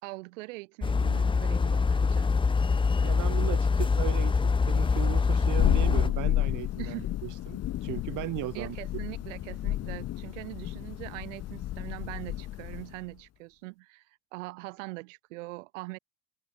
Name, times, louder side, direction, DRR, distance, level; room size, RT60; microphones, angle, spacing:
voice 1, 0.0-2.3 6.8-7.2 8.5-14.1 14.3-16.0, right 23 dB, 90° right, 3.0 m, -42 dB
sound 1, 0.8-6.1, left 4 dB, 15° left, 0.7 m, -25 dB
voice 2, 3.0-8.8, right 17 dB, 55° right, 1.2 m, -37 dB
Thunder, 4.6-13.0, left 13 dB, 45° left, 0.9 m, -32 dB
supercardioid pair, 100°, 36 cm